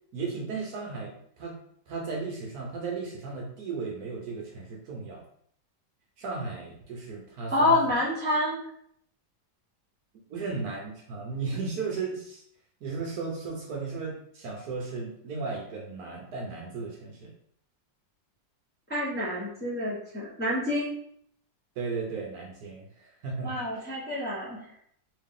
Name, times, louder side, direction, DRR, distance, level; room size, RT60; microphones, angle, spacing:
voice 1, 0.1-1.6 1.9-5.2 6.2-7.8 10.1-12.4 12.8-17.3 21.8-23.5, right 4 dB, 65° right, -1 dB, 1.1 m, -35 dB
voice 2, 7.5-8.6 18.9-20.9 23.4-24.7, left 1 dB, 10° left, -7 dB, 0.8 m, -27 dB
3.2 x 2.7 x 3.6 m, 0.67 s
omnidirectional pair, 1.9 m